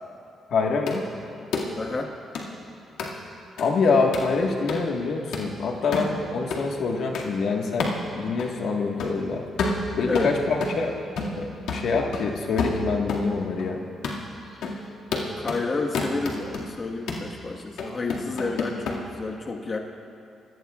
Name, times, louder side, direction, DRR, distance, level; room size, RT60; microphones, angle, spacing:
voice 1, 0.5-1.1 3.6-9.4 9.9-11.0 11.4-13.8, left 4 dB, 70° left, 1 dB, 1.6 m, -25 dB
sound 1, 0.9-1.0 1.5-1.7 2.3-2.5 3.0-3.1 3.6-3.7 4.1-4.3 4.7-4.8 5.3-5.5 5.9-6.1 6.5-6.6 7.1-7.3 7.8-8.0 8.4-8.5 9.0-9.2 9.6-10.8 11.2-11.4 11.7-13.3 13.6-13.7 14.0-14.2 14.6-14.8 15.1-15.6 15.9-16.6 17.1-17.3 17.8-19.0, left 3 dB, 90° left, 2.1 m, -29 dB
voice 2, 1.8-2.1 10.0-10.3 14.5-14.8 15.4-19.8, left 3 dB, 40° left, 0 dB, 1.4 m, -30 dB
27.0 x 17.5 x 2.4 m, 2.5 s
cardioid pair, 90°, 0 cm